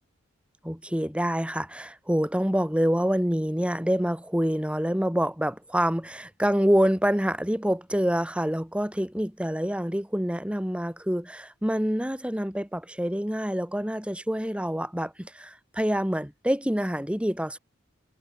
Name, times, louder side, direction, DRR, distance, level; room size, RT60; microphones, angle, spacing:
voice 1, 0.6-17.6, equal, 5° right, 2.7 m, -26 dB
head